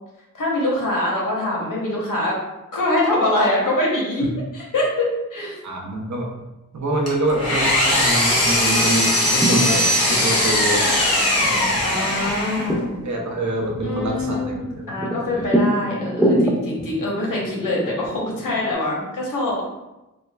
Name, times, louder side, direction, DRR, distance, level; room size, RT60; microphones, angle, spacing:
voice 1, 0.3-2.4 2.7-4.3 4.5-5.6 11.8-12.8 13.8-19.6, left 1 dB, 90° left, -3 dB, 0.9 m, -24 dB
voice 2, 5.6-6.3 6.7-11.0 11.4-11.8 12.8-14.9 15.1-15.5, right 1 dB, 60° right, 0 dB, 0.7 m, -26 dB
Engine, 7.1-12.8, left 1 dB, 50° left, 1.0 m, -20 dB
sound 1, 9.1-18.7, right 1 dB, 5° right, 0.4 m, -27 dB
4.2 x 2.2 x 2.2 m, 0.99 s
wide cardioid pair, 65°, 32 cm